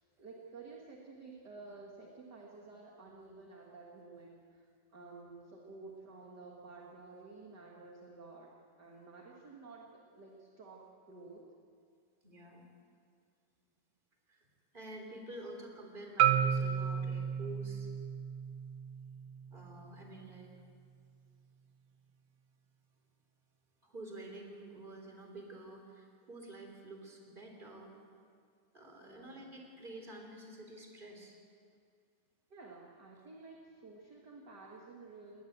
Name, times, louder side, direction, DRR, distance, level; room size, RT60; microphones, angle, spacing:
voice 1, 0.2-4.7 4.9-8.5 8.8-9.9 10.1-11.5 29.0-29.5 32.5-35.4, right 3 dB, 40° right, -2 dB, 1.8 m, -52 dB
voice 2, 12.2-12.6 14.3-14.5 14.7-17.9 19.5-20.5 23.8-27.9 28.7-31.4, right 1 dB, 15° right, 2 dB, 3.2 m, -49 dB
Marimba xylophone, 16.2-20.4, right 9 dB, 70° right, 2.0 m, -33 dB
20.5 x 19.5 x 8.0 m, 2.2 s
omnidirectional pair, 4.1 m